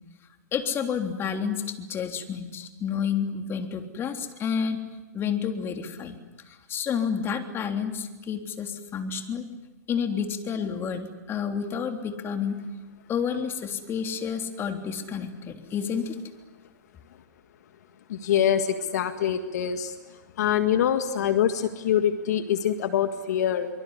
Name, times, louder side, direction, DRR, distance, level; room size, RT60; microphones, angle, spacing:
voice 1, 0.5-4.8 5.1-6.2 6.5-9.5 9.9-12.6 13.1-16.2, left 7 dB, 25° left, 5 dB, 3.4 m, -30 dB
voice 2, 18.1-20.0 20.4-23.7, left 9 dB, 65° left, 8 dB, 1.9 m, -24 dB
24.5 x 24.5 x 9.8 m, 1.2 s
hypercardioid pair, 125°, 10 cm